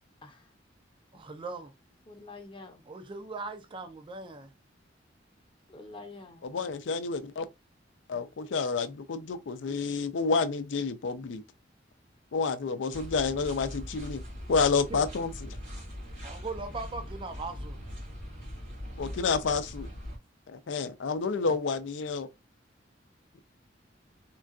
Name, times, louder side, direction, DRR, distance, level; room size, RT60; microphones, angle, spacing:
voice 1, 1.1-1.7 2.9-4.5 14.9-15.0 16.2-17.8 19.0-19.2, right 3 dB, 30° right, 0.4 m, -39 dB
voice 2, 2.1-2.9 5.7-6.4, left 3 dB, 30° left, 0.7 m, -47 dB
voice 3, 6.4-7.5 8.1-11.4 12.3-14.2 14.5-15.6 19.0-19.9 20.5-22.3, left 4 dB, 80° left, 0.4 m, -29 dB
sound 1, 12.9-20.2, equal, 85° right, 1.8 m, -41 dB
3.7 x 2.2 x 2.4 m
head